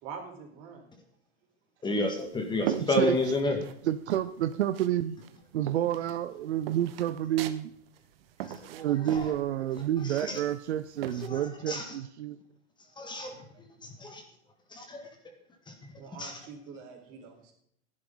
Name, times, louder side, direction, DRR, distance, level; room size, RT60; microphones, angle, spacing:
voice 1, 0.0-0.9 16.0-17.5, right 5 dB, 40° right, 2 dB, 4.1 m, -45 dB
voice 2, 1.8-3.6 8.4-8.5 9.1-9.3 10.1-10.4 11.2-11.8 13.0-13.4 13.8-14.2 14.7-15.1 15.7-15.8 16.2-16.4, left 1 dB, 15° left, 4 dB, 1.7 m, -30 dB
sound 1, 1.9-3.8 4.1-5.0 5.2-11.3, right 11 dB, 55° right, 1.2 m, -40 dB
voice 3, 2.6-3.2 3.8-5.2 5.5-7.7 8.7-12.4, right 12 dB, 75° right, 12 dB, 0.7 m, -29 dB
15.0 x 11.0 x 3.9 m, 0.68 s
hypercardioid pair, 130°, 34 cm